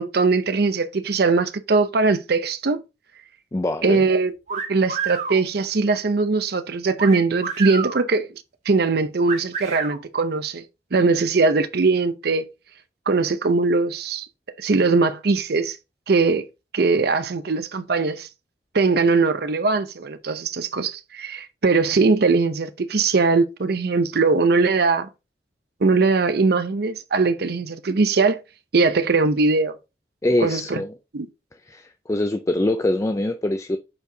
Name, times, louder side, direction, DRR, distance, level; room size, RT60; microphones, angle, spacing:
voice 1, 0.0-2.8 3.8-8.3 8.7-10.6 10.9-12.5 13.1-14.3 14.6-15.8 16.1-16.4 16.7-18.3 18.7-25.1 25.8-28.4 28.7-29.8 30.4-30.8 31.1-31.3, right 4 dB, 60° right, 0.6 m, -20 dB
voice 2, 3.5-4.0 30.2-30.9 31.7-33.8, left 1 dB, 20° left, 0.4 m, -23 dB
Wolf Whistle, 4.5-5.4 7.0-8.0 9.3-10.0, right 6 dB, 40° right, 1.7 m, -29 dB
8.4 x 4.7 x 2.7 m
head